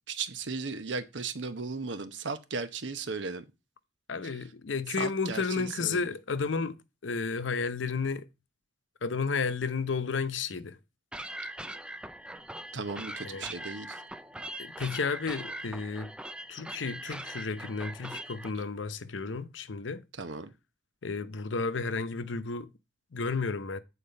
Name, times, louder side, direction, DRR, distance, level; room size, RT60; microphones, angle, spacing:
voice 1, 0.1-3.4 5.0-6.0 12.7-14.0 20.2-20.5, right 4 dB, 80° right, 0.9 m, -36 dB
voice 2, 4.1-6.8 7.0-8.2 9.0-10.8 13.2-13.5 14.6-16.1 16.5-20.0 21.0-22.7 23.1-23.8, left 4 dB, 85° left, 0.7 m, -32 dB
sound 1, 11.1-18.5, right 1 dB, 5° right, 0.4 m, -41 dB
8.6 x 4.3 x 5.2 m
head